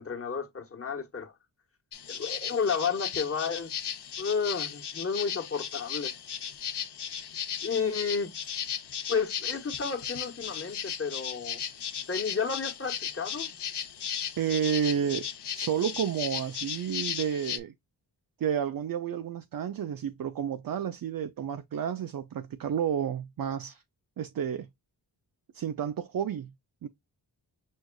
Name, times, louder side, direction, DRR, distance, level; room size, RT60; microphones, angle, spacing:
voice 1, 0.0-1.3 2.1-3.7 4.2-6.2 7.6-8.3 9.1-11.6 12.1-13.5, left 5 dB, 30° left, 1.2 m, -31 dB
sound 1, 1.9-17.6, left 8 dB, 65° left, 0.8 m, -36 dB
voice 2, 14.4-15.3 15.5-17.7 18.4-23.8 24.2-24.7 25.5-26.5 26.8-26.9, right 8 dB, 50° right, 0.5 m, -31 dB
6.4 x 2.4 x 2.3 m
wide cardioid pair, 90°, 44 cm